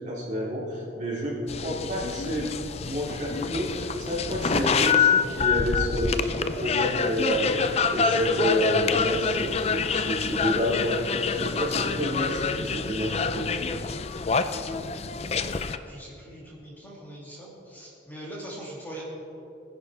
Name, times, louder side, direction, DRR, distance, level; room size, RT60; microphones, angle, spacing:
voice 1, 0.0-2.5 2.8-7.5 7.9-11.0 11.3-13.5, equal, 40° right, -5 dB, 2.9 m, -29 dB
sound 1, 1.5-15.8, left 5 dB, 35° left, 0.4 m, -27 dB
voice 2, 15.8-19.0, right 1 dB, 10° left, -6 dB, 2.4 m, -42 dB
20.5 x 10.0 x 3.5 m, 2.8 s
head